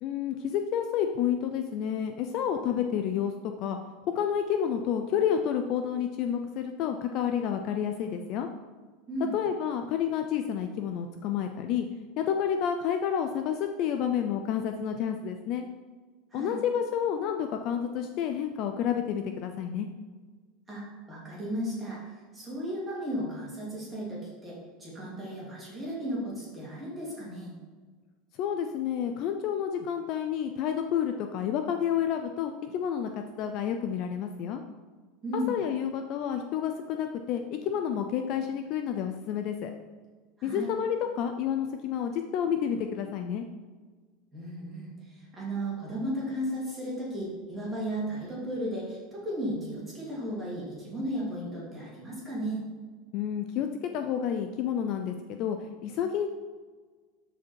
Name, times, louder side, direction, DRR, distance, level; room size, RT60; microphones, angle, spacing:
voice 1, 0.0-3.8 4.1-8.5 9.3-11.9 12.2-15.7 16.3-19.9 28.4-34.6 35.5-39.7 40.4-43.4 53.1-56.3, left 8 dB, 35° left, 6 dB, 0.5 m, -30 dB
voice 2, 20.7-27.5 35.2-35.5 40.4-40.7 44.3-52.6, equal, 10° right, -6 dB, 3.0 m, -35 dB
13.0 x 5.0 x 4.7 m, 1.4 s
supercardioid pair, 175°, 0 cm